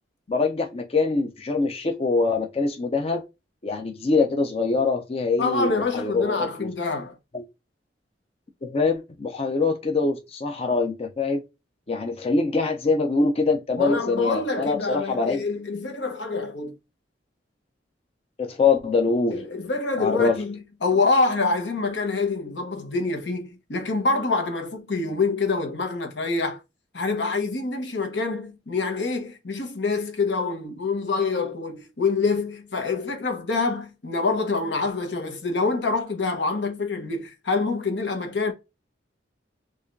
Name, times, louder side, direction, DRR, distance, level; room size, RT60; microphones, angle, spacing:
voice 1, 0.3-3.2 3.6-6.7 7.3-7.4 8.6-11.4 11.9-15.4 18.4-19.4 20.0-20.3, left 4 dB, 35° left, 0.5 m, -24 dB
voice 2, 5.4-7.2 13.8-16.7 19.3-26.6 26.9-38.5, left 3 dB, 80° left, 1.0 m, -26 dB
4.8 x 2.4 x 2.5 m
head